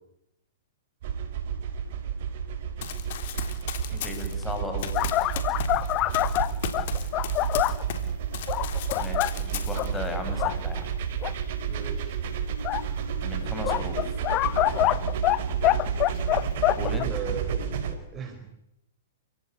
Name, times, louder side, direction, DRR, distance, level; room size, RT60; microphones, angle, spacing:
sound 1, 1.0-18.0, right 7 dB, 60° right, 4.4 m, -31 dB
Run, 2.8-8.1 8.3-10.1, left 9 dB, 55° left, 3.5 m, -36 dB
voice 1, 3.9-5.3 8.9-10.9 13.2-14.2 16.8-17.1, left 2 dB, 10° left, 5 dB, 6.6 m, -36 dB
sound 2, 4.9-7.8 8.5-9.3 9.8-9.9 10.3-10.6 11.2-11.3 12.6-12.8 13.6-15.4 15.6-17.0, left 17 dB, 35° left, 1.1 m, -25 dB
voice 2, 5.7-6.2 11.7-12.2 14.7-15.0 17.1-18.5, right 6 dB, 25° right, 6 dB, 4.4 m, -38 dB
28.5 x 17.0 x 9.9 m, 0.82 s
hypercardioid pair, 120°, 0 cm